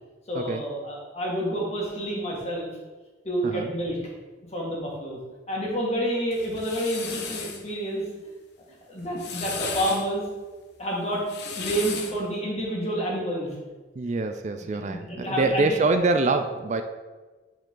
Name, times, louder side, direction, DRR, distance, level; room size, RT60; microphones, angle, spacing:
voice 1, 0.3-2.7 3.2-4.0 4.5-5.2 5.5-8.0 8.9-10.2 10.8-11.3 11.6-13.5 14.7-15.8, right 1 dB, 35° left, -3 dB, 1.9 m, -29 dB
sound 1, 6.3-7.6 9.0-10.1 11.1-12.2, left 5 dB, 60° left, 0.9 m, -35 dB
voice 2, 14.0-16.8, right 3 dB, 40° right, 8 dB, 0.3 m, -25 dB
9.2 x 4.8 x 3.8 m, 1.3 s
head